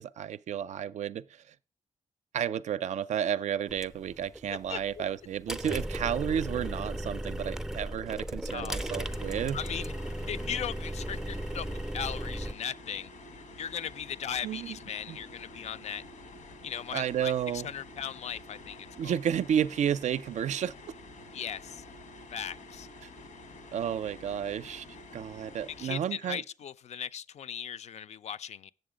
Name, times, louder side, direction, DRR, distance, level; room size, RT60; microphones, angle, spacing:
voice 1, 0.0-1.5 2.3-9.6 14.4-14.8 15.1-15.2 16.9-17.7 19.0-20.9 23.7-26.4, right 9 dB, 75° right, 0.4 m, -32 dB
sound 1, 3.7-12.5, right 1 dB, 5° right, 0.4 m, -36 dB
voice 2, 4.5-5.0 8.5-8.8 9.5-9.9 10.3-11.7 11.9-13.1 13.6-16.0 16.6-18.8 19.0-19.2 21.3-21.8 22.3-22.9 25.8-28.7, left 8 dB, 65° left, 0.4 m, -38 dB
sound 2, 8.8-25.9, left 2 dB, 90° left, 1.2 m, -49 dB
7.9 x 6.9 x 5.0 m
wide cardioid pair, 135°, 12 cm